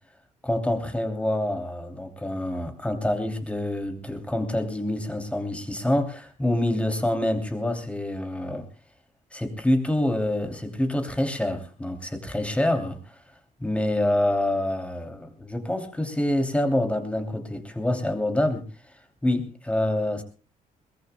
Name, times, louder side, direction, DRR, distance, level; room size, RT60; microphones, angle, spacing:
voice 1, 0.4-8.7 9.3-13.0 13.6-18.6 19.2-20.2, left 1 dB, 10° left, 5 dB, 2.8 m, -26 dB
22.0 x 21.0 x 2.2 m, 0.36 s
cardioid pair, 125°, 15 cm